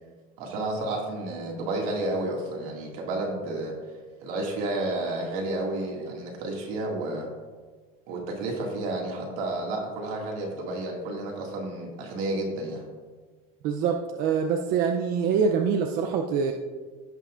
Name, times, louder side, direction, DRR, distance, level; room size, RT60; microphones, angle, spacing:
voice 1, 0.4-3.8 4.2-7.3 8.1-12.8, right 2 dB, 70° right, -1 dB, 2.1 m, -31 dB
voice 2, 13.6-16.5, right 6 dB, 45° right, 3 dB, 0.5 m, -25 dB
16.5 x 5.7 x 2.5 m, 1.4 s
cardioid pair, 165°, 20 cm